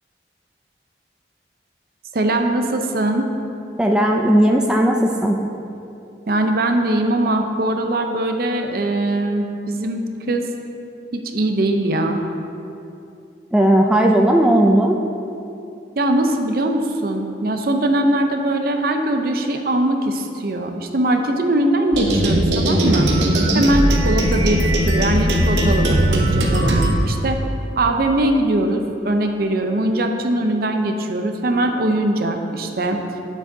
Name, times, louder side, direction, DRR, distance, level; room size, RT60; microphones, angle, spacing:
voice 1, 2.1-3.3 6.3-10.4 11.1-12.2 16.0-23.1 23.5-27.4 27.8-33.0, right 1 dB, 55° right, 5 dB, 0.6 m, -21 dB
voice 2, 3.8-5.4 13.5-15.0, right 1 dB, 5° right, 1 dB, 0.3 m, -16 dB
sound 1, 21.9-26.9, right 1 dB, 80° right, 0.9 m, -18 dB
8.9 x 7.2 x 2.7 m, 2.7 s
head